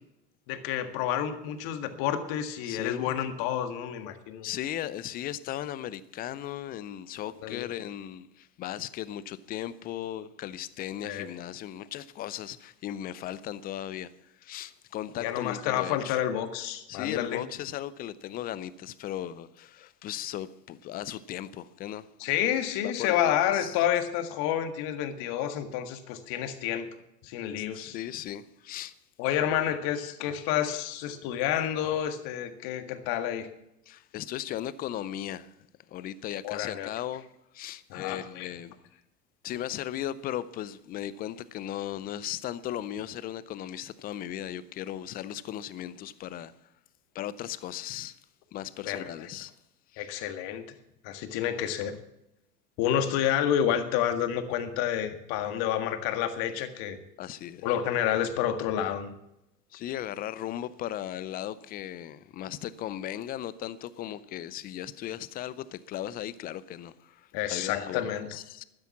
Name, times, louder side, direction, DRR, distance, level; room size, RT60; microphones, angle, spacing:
voice 1, 0.5-4.5 7.4-7.7 11.0-11.3 15.2-17.4 22.2-26.9 27.2-28.0 29.2-33.5 36.4-36.9 37.9-38.5 48.8-49.3 50.0-50.6 51.0-52.0 52.8-57.0 57.6-59.1 67.3-68.3, left 10 dB, 45° left, 1.8 m, -29 dB
voice 2, 2.6-3.2 4.4-14.1 14.4-16.2 16.9-22.1 22.8-23.8 27.6-28.9 33.9-35.5 35.9-37.3 37.5-38.7 39.4-46.5 47.1-48.2 48.5-49.5 49.9-50.1 57.2-57.7 59.7-68.6, left 12 dB, 20° left, 0.4 m, -37 dB
12.5 x 9.8 x 7.2 m
hypercardioid pair, 95°, 49 cm